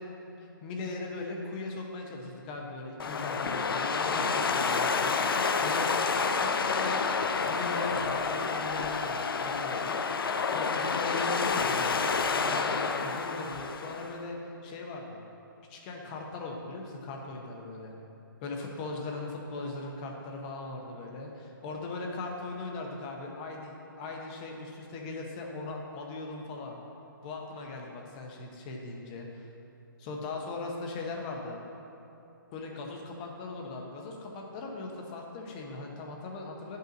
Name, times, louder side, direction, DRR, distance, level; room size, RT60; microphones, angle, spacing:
voice 1, 0.6-10.0 10.5-15.2 15.7-17.9 18.4-26.8 27.2-29.5 30.0-31.6 32.5-36.8, left 3 dB, 20° left, 1 dB, 0.8 m, -39 dB
sound 1, 3.0-14.2, left 5 dB, 85° left, 0.6 m, -29 dB
10.5 x 5.6 x 3.9 m, 2.8 s
hypercardioid pair, 160°, 12 cm